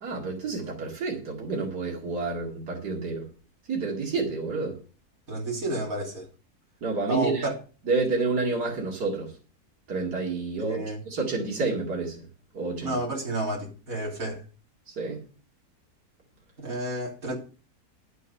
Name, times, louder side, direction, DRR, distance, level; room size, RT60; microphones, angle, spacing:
voice 1, 0.0-3.2 3.7-4.8 6.8-7.4 7.9-9.3 9.9-12.1 12.5-13.0 15.0-15.2, right 3 dB, 85° right, 2.9 m, -29 dB
voice 2, 5.3-6.3 7.1-7.5 10.6-11.0 12.8-14.4 16.6-17.4, right 1 dB, 60° right, 3.6 m, -30 dB
11.0 x 8.3 x 5.5 m
omnidirectional pair, 1.7 m